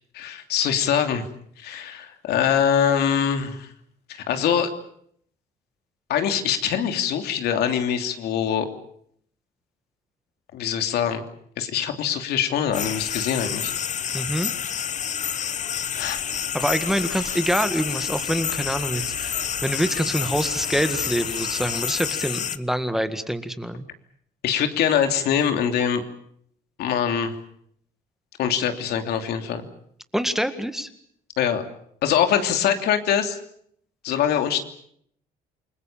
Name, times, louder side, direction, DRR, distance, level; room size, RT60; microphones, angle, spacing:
voice 1, 0.1-1.3 1.6-3.7 4.1-4.7 6.1-8.7 10.5-11.2 11.6-13.7 16.0-16.2 24.4-26.0 26.8-27.3 28.4-29.7 31.4-31.6 32.0-33.4 34.0-34.6, left 8 dB, 75° left, 6 dB, 3.0 m, -23 dB
sound 1, 12.7-22.6, left 8 dB, 45° left, 1.2 m, -29 dB
voice 2, 14.1-14.5 16.5-19.3 19.6-23.9 30.1-30.9, equal, ahead, 9 dB, 1.8 m, -25 dB
sound 2, 16.1-21.9, right 8 dB, 90° right, 4.3 m, -44 dB
28.5 x 21.0 x 7.4 m, 0.67 s
cardioid pair, 110°, 17 cm